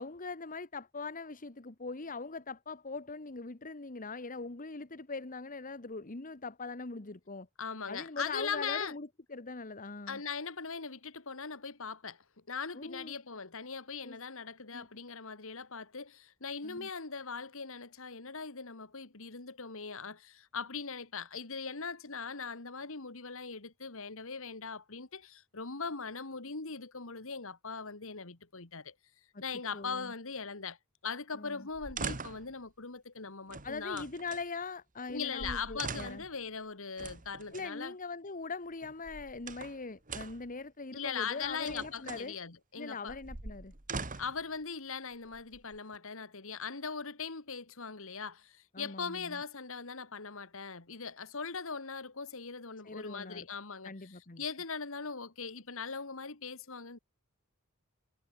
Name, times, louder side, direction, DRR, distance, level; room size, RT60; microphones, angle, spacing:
voice 1, 0.0-7.5 7.9-10.2 12.7-13.2 14.0-14.2 14.7-14.9 16.6-16.9 29.3-29.4 29.7-30.1 31.3-31.7 33.6-36.2 37.5-42.3 42.8-43.7 48.7-49.4 52.8-53.5 53.8-54.4, left 3 dB, 40° left, 1.3 m, -41 dB
voice 2, 7.6-9.0 10.1-28.9 29.4-30.8 31.0-34.1 35.1-37.9 40.9-43.2 44.2-57.0, left 5 dB, 65° left, 2.0 m, -40 dB
sound 1, 31.7-32.5 33.5-34.4 35.1-35.2 35.4-36.3 37.0-37.7 38.8-39.8 40.1-40.5 41.4-42.3 43.1-44.4 45.3-46.0, right 4 dB, 40° right, 2.0 m, -42 dB
head